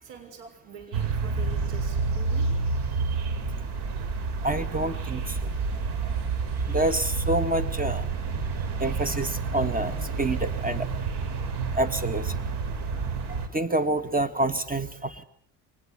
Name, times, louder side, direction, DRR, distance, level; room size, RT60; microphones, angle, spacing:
voice 1, 0.0-2.5, right 6 dB, 80° right, 8 dB, 6.3 m, -45 dB
sound 1, 0.9-13.5, right 4 dB, 65° right, 3.6 m, -29 dB
voice 2, 4.4-5.2 6.7-8.1 8.8-10.9 11.7-12.3 13.5-15.2, right 2 dB, 20° right, 12 dB, 2.1 m, -27 dB
23.5 x 20.0 x 8.3 m, 0.64 s
supercardioid pair, 80°, 44 cm